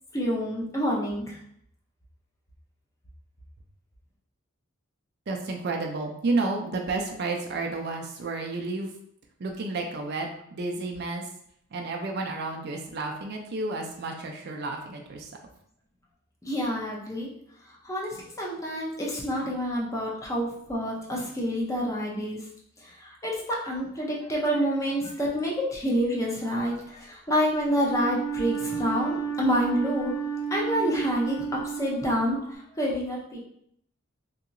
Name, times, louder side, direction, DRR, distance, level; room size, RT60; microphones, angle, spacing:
voice 1, 0.1-1.4 16.4-17.3 17.8-22.4 22.8-30.1 30.5-33.4, equal, 15° left, -3 dB, 0.5 m, -28 dB
voice 2, 5.3-8.9 9.4-11.2 11.7-15.3, right 3 dB, 50° right, 3 dB, 0.4 m, -31 dB
Wind instrument woodwind instrument, 27.7-32.5, right 6 dB, 80° left, 1.4 m, -32 dB
2.9 x 2.8 x 2.5 m, 0.70 s
head